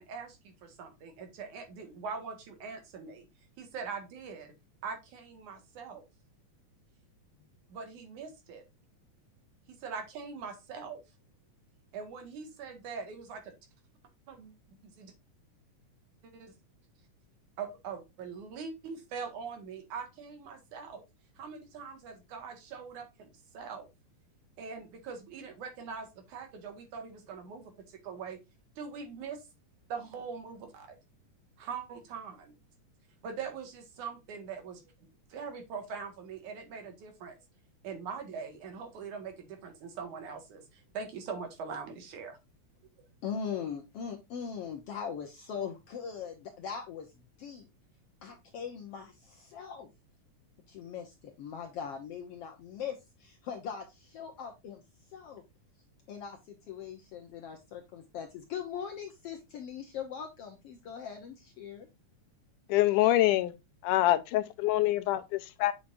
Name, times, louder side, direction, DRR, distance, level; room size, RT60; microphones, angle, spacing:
voice 1, 0.0-3.3 3.6-4.5 4.8-6.0 7.3-7.4 7.7-8.6 9.7-11.0 11.9-13.5 14.3-15.1 16.2-16.5 17.6-21.0 21.4-23.3 23.5-23.9 24.6-28.4 28.8-29.4 29.9-31.0 31.6-32.5 33.2-37.4 37.8-42.4, right 5 dB, 70° right, 3.1 m, -42 dB
voice 2, 43.2-47.1 47.4-47.7 48.2-49.9 50.7-54.8 55.1-55.4 56.1-61.9, left 7 dB, 70° left, 1.5 m, -40 dB
voice 3, 62.7-63.5 63.8-65.7, left 15 dB, 85° left, 2.2 m, -25 dB
8.6 x 5.8 x 2.6 m
omnidirectional pair, 3.7 m